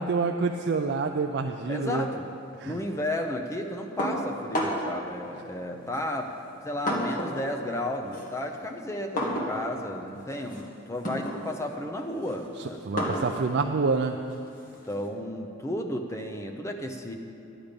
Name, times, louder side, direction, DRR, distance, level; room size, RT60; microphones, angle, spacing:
voice 1, 0.0-2.1 2.6-2.8 12.9-14.2, right 4 dB, 55° right, 4 dB, 0.4 m, -27 dB
voice 2, 1.7-2.3 2.6-6.3 6.6-12.8 14.9-17.1, left 1 dB, 15° left, 3 dB, 0.6 m, -33 dB
sound 1, 4.0-5.0 5.9-7.5 7.8-15.1, equal, 40° left, 1.7 m, -33 dB
11.5 x 10.0 x 5.2 m, 2.8 s
head